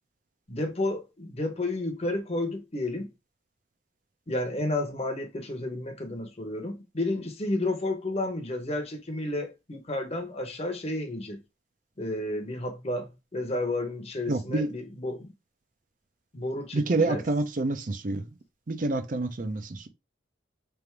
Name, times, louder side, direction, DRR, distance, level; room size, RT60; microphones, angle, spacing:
voice 1, 0.5-3.1 4.3-11.4 12.0-15.3 16.3-17.3, left 2 dB, 35° left, 0.9 m, -31 dB
voice 2, 14.3-14.7 16.7-18.4 18.7-19.9, right 2 dB, 45° right, 0.6 m, -28 dB
3.4 x 2.5 x 4.5 m
head